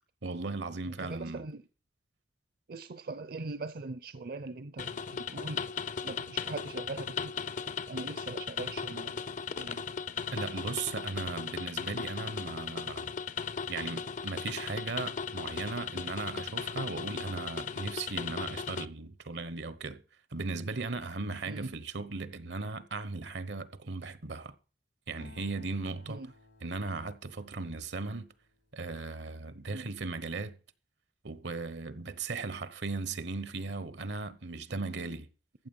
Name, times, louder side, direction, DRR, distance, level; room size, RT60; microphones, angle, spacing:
voice 1, 0.2-1.5 10.3-13.1 13.7-20.0 20.3-24.5 25.1-26.2 26.6-28.3 28.7-30.6 31.2-35.3, right 3 dB, 80° right, 1.0 m, -37 dB
voice 2, 0.9-1.6 2.7-5.7 6.0-7.4 7.9-9.1 9.6-9.9 21.5-21.7 26.1-26.3 29.6-29.9, right 3 dB, 60° right, 0.6 m, -41 dB
sound 1, 4.8-18.9, left 6 dB, 45° left, 0.5 m, -37 dB
Acoustic guitar, 25.2-29.0, left 2 dB, 85° left, 2.2 m, -58 dB
14.5 x 7.9 x 5.4 m
head